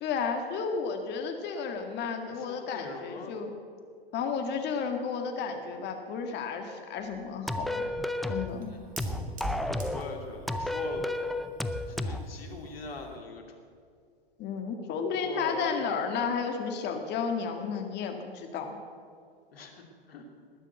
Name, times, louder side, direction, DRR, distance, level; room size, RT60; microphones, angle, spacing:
voice 1, 0.0-3.5 4.1-7.9 8.3-8.7 14.4-18.7, left 5 dB, 35° left, 5 dB, 2.0 m, -32 dB
voice 2, 2.3-3.4 8.7-8.8 9.7-11.1 11.9-13.6 15.0-15.8 19.5-20.3, left 3 dB, 75° left, 3 dB, 2.7 m, -42 dB
Fire, 7.0-13.2, equal, 25° right, 2.8 m, -44 dB
sound 1, 7.5-8.5 9.0-10.1 10.5-12.2, left 1 dB, ahead, 0.5 m, -32 dB
19.5 x 7.3 x 8.0 m, 2.2 s
figure-of-eight pair, 100°, 30 cm